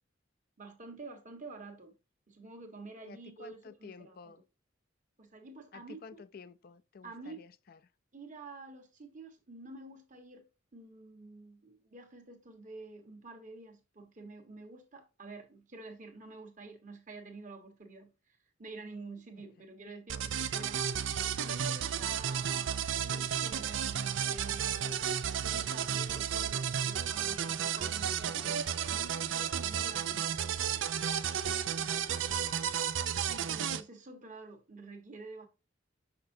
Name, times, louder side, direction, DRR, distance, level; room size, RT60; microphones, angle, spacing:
voice 1, 0.6-1.9 2.3-4.3 5.2-6.2 7.0-7.5 8.1-10.5 10.7-20.8 21.4-30.5 33.3-35.5, right 3 dB, 40° right, 1.4 m, -49 dB
voice 2, 3.0-4.4 5.7-7.8 28.3-28.8 31.8-32.8, left 5 dB, 50° left, 0.4 m, -52 dB
sound 1, 20.1-33.8, right 8 dB, 75° right, 0.5 m, -33 dB
6.4 x 5.9 x 2.7 m
head